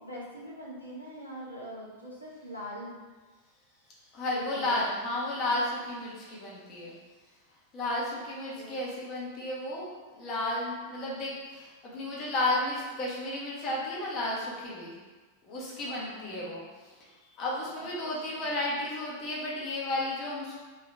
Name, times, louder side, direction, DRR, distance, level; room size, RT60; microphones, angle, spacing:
voice 1, 0.0-3.0 4.3-4.8 8.5-8.8 10.9-11.2 15.8-16.5 17.8-18.5, equal, 90° right, -6 dB, 0.9 m, -43 dB
voice 2, 4.1-6.9 7.7-15.0 15.5-16.9 17.4-20.5, left 1 dB, 35° left, -5 dB, 1.2 m, -33 dB
3.8 x 2.9 x 3.3 m, 1.3 s
figure-of-eight pair, 90°, 0 cm